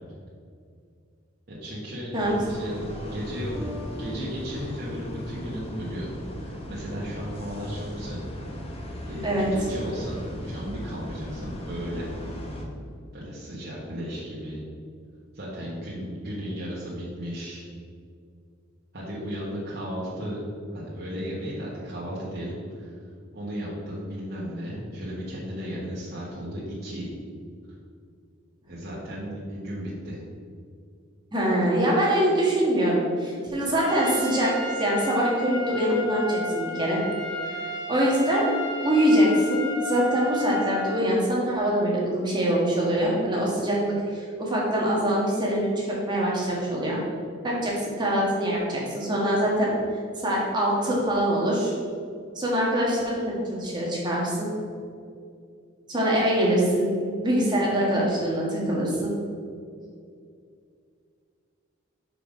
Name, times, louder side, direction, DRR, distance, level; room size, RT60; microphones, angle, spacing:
voice 1, 1.5-2.1 2.4-2.9 3.1-6.1 6.4-8.2 9.1-12.1 13.1-14.6 15.3-17.7 18.9-20.4 20.7-22.9 23.3-27.1 28.7-30.2, equal, 50° right, -7 dB, 1.3 m, -35 dB
sound 1, 2.1-12.6, equal, 30° left, 0.8 m, -37 dB
Bass guitar, 3.6-6.6, left 1 dB, 5° right, 0.4 m, -44 dB
voice 2, 31.3-34.5 34.8-37.0 37.3-37.6 37.9-38.5 38.8-47.0 47.4-49.7 50.2-51.8 52.3-54.5 55.9-59.1, equal, 20° right, -4 dB, 1.4 m, -24 dB
Trumpet, 33.8-41.1, left 1 dB, 70° left, 1.2 m, -33 dB
5.5 x 4.8 x 5.1 m, 2.3 s
head